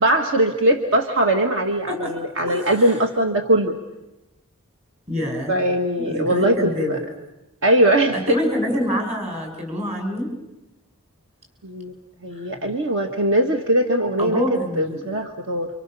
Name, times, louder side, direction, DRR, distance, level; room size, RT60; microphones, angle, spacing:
voice 1, 0.0-3.8 5.5-7.0 7.6-8.2 11.6-11.9 12.2-15.7, right 1 dB, 60° right, 4 dB, 1.8 m, -20 dB
voice 2, 2.5-2.9 5.1-5.6 6.0-7.0 8.1-10.3 12.3-12.5 14.2-15.1, left 1 dB, 30° right, 2 dB, 7.2 m, -26 dB
29.0 x 26.5 x 7.0 m, 0.96 s
head